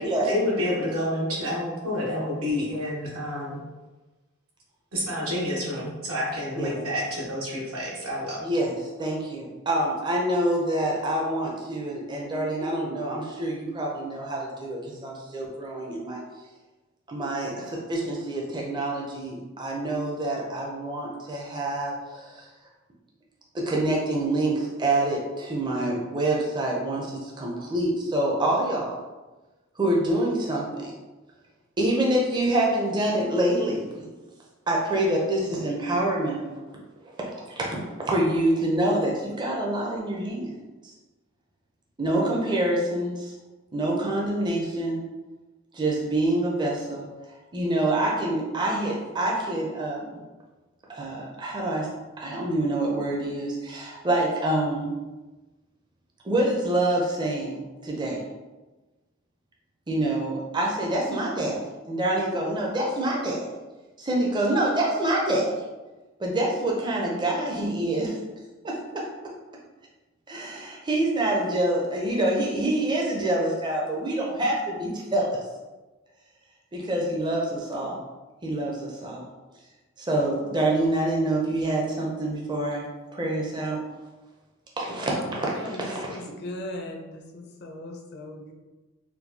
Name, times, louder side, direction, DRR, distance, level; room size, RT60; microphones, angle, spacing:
voice 1, 0.2-3.6 4.9-8.4, left 1 dB, 80° right, -4 dB, 1.1 m, -29 dB
voice 2, 8.4-16.2 17.1-22.5 23.5-29.0 29.8-30.9 31.8-34.1 34.7-36.4 37.5-40.5 40.8-40.9 42.0-43.3 43.7-45.0 45.7-47.1 47.5-50.2 50.9-54.9 56.2-58.2 59.9-61.6 61.9-63.5 64.0-65.5 66.2-68.2 68.6-69.0 70.3-75.4 76.7-78.0 78.4-79.3 80.0-82.8 83.1-83.8 84.8-85.5 85.8-86.1, right 1 dB, 20° right, -2 dB, 0.5 m, -26 dB
voice 3, 85.0-88.5, left 1 dB, 50° left, 1 dB, 0.5 m, -38 dB
4.4 x 2.2 x 2.7 m, 1.2 s
head